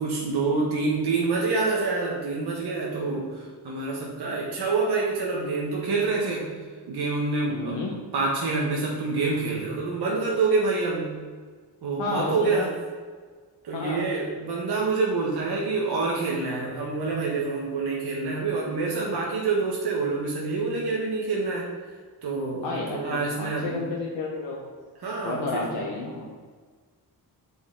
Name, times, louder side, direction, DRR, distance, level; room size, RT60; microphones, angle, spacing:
voice 1, 0.0-6.5 6.9-7.8 8.1-11.2 11.8-12.7 13.6-21.7 22.2-23.8 25.0-25.7, right 3 dB, 60° right, -3 dB, 1.2 m, -27 dB
voice 2, 7.5-7.9 12.0-12.7 13.7-14.1 22.6-24.7 25.2-26.3, left 3 dB, 80° left, -2 dB, 0.9 m, -31 dB
6.9 x 4.1 x 3.7 m, 1.5 s
cardioid pair, 60°, 43 cm